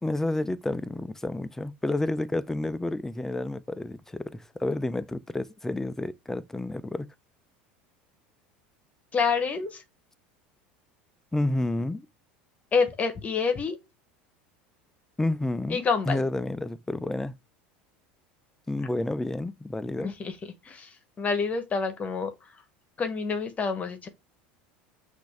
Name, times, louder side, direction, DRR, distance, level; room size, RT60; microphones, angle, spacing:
voice 1, 0.0-7.1 11.3-12.1 15.2-17.3 18.7-20.2, left 2 dB, 10° left, 0.4 m, -30 dB
voice 2, 9.1-9.8 12.7-13.8 15.7-16.2 20.0-20.3 20.6-22.3 23.0-24.1, left 5 dB, 30° left, 1.0 m, -27 dB
6.1 x 2.6 x 3.2 m
hypercardioid pair, 85°, 5 cm